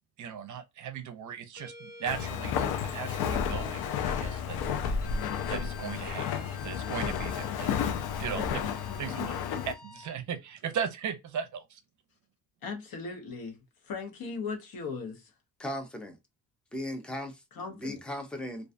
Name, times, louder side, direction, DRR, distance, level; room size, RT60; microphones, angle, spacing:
voice 1, 0.2-4.6 5.5-7.7 8.2-8.5 9.0-9.4 9.6-11.8, right 8 dB, 55° right, 0.6 m, -37 dB
sound 1, 1.6-4.4 5.0-10.2, left 4 dB, 40° left, 1.3 m, -48 dB
Walk footsteps, 2.1-9.7, left 7 dB, 85° left, 0.5 m, -32 dB
voice 2, 12.6-15.3 17.5-18.0, left 4 dB, 70° left, 0.9 m, -38 dB
voice 3, 15.6-16.2 16.7-17.4 17.7-18.7, left 1 dB, 5° left, 0.5 m, -37 dB
2.4 x 2.2 x 2.5 m
cardioid pair, 110°, 37 cm